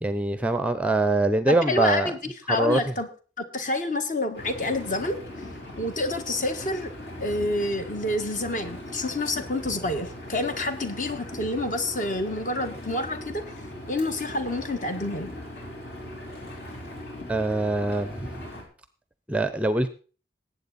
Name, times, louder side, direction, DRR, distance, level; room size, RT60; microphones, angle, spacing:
voice 1, 0.0-2.1 2.5-2.8 17.3-18.4 19.3-19.9, right 2 dB, 5° right, 12 dB, 0.5 m, -24 dB
voice 2, 1.5-2.2 2.5-3.1 3.4-5.2 5.8-6.9 7.2-13.4 13.9-15.3, left 1 dB, 45° left, 7 dB, 1.5 m, -28 dB
Engine, 4.3-18.6, left 1 dB, 65° left, 4.4 m, -40 dB
19.0 x 8.3 x 4.1 m, 0.38 s
head